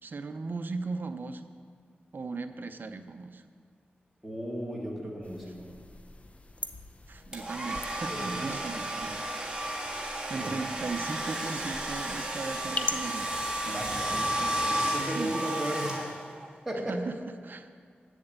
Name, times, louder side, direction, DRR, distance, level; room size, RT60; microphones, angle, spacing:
voice 1, 0.0-1.5 2.1-3.4 7.1-9.3 9.9-14.6 15.0-15.4 16.9-17.7, right 3 dB, 55° right, 8 dB, 0.6 m, -38 dB
voice 2, 4.2-5.7 8.1-8.6 10.3-10.6 13.7-14.2 14.7-16.0 16.7-16.9, right 1 dB, ahead, -4 dB, 2.2 m, -35 dB
sound 1, 5.2-14.0, left 2 dB, 35° left, 0.6 m, -42 dB
Domestic sounds home sounds, 7.3-16.5, right 1 dB, 20° right, 1.6 m, -33 dB
8.1 x 7.2 x 8.0 m, 2.1 s
wide cardioid pair, 95°, 4 cm